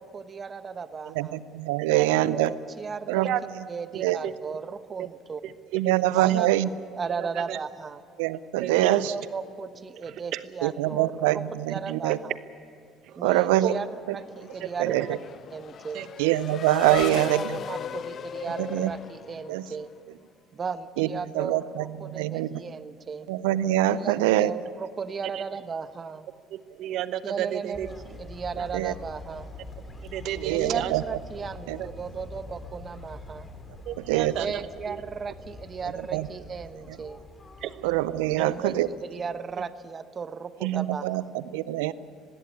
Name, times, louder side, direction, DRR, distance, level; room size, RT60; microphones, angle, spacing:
voice 1, 0.0-1.4 2.3-3.3 3.7-5.4 6.2-8.0 8.8-11.4 11.7-12.4 13.1-13.9 14.1-15.0 15.5-16.1 16.9-19.9 20.5-23.3 24.0-26.3 27.2-29.5 30.4-33.5 34.4-37.2 38.3-41.3, right 5 dB, 35° right, 12 dB, 1.1 m, -35 dB
voice 2, 1.1-2.5 3.1-3.3 4.0-4.2 5.7-6.7 8.2-9.1 10.6-12.2 13.2-13.7 14.8-15.2 16.2-17.6 18.6-18.9 19.5-19.7 21.0-21.1 21.3-21.9 22.1-22.6 23.3-24.5 28.7-28.9 30.4-31.0 31.7-31.8 34.1-34.3 36.1-36.3 37.8-38.9 40.6-41.9, right 15 dB, 80° right, 17 dB, 0.6 m, -24 dB
voice 3, 3.9-4.3 5.4-6.4 7.2-7.6 8.6-8.9 10.3-10.4 13.1-13.2 13.6-13.8 14.6-15.0 15.9-16.1 24.2-24.3 25.3-25.4 26.5-27.9 30.1-30.9 31.8-31.9 33.9-34.6 34.9-35.0 37.6-37.9 38.4-38.5, right 12 dB, 65° right, 13 dB, 1.0 m, -32 dB
Race car auto racing / Accelerating revving vroom, 13.9-20.0, left 8 dB, 50° left, 0.5 m, -37 dB
sound 1, 27.7-39.5, left 2 dB, 30° left, 2.5 m, -44 dB
19.5 x 16.5 x 9.7 m, 2.3 s
hypercardioid pair, 65°, 0 cm